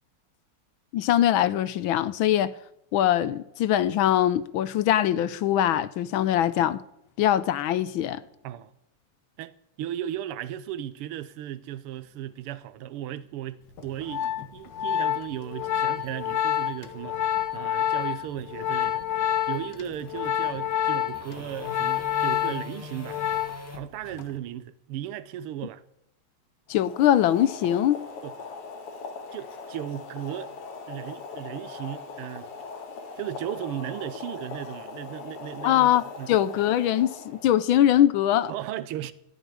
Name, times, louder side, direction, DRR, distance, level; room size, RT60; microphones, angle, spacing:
voice 1, 0.9-2.5 2.9-6.8 7.2-8.2 26.7-28.0 35.6-38.5, left 11 dB, 75° left, 1.4 m, -22 dB
voice 2, 9.4-19.0 19.5-23.2 23.7-25.8 28.2-28.3 29.3-30.5 30.9-32.5 33.2-36.3 38.5-39.1, right 11 dB, 85° right, 1.7 m, -36 dB
sound 1, 11.9-23.8, left 3 dB, 5° left, 1.6 m, -46 dB
Organ, 13.8-23.8 24.1-24.4, left 10 dB, 60° left, 1.6 m, -28 dB
Boiling, 26.7-37.7, left 4 dB, 90° left, 2.5 m, -40 dB
14.0 x 6.6 x 10.0 m
omnidirectional pair, 2.4 m